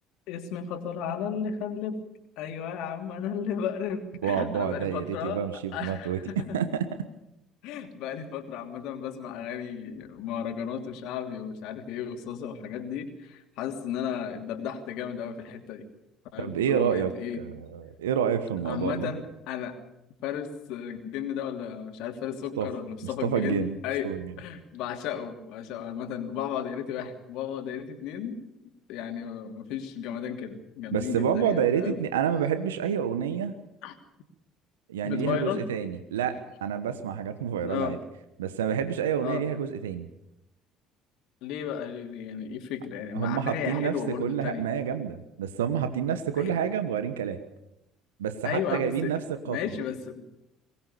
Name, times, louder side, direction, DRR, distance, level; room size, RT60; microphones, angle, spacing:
voice 1, 0.3-2.0 2.4-5.4 5.7-6.6 7.6-15.8 16.3-17.4 18.6-19.8 20.2-24.1 24.4-28.4 28.9-32.0 33.8-33.9 35.0-35.7 37.6-38.0 39.2-39.4 41.4-44.6 46.4-46.5 48.4-49.1 49.4-50.2, left 8 dB, 65° left, 5 dB, 2.9 m, -34 dB
voice 2, 4.2-6.2 6.5-6.8 16.4-17.1 17.4-19.1 22.6-22.7 23.0-23.8 24.0-24.2 30.9-33.5 34.9-38.0 38.4-40.1 43.1-47.4 48.2-49.2 49.5-49.6, right 8 dB, 80° right, 10 dB, 1.2 m, -28 dB
23.0 x 19.0 x 6.9 m, 0.87 s
hypercardioid pair, 60°, 0 cm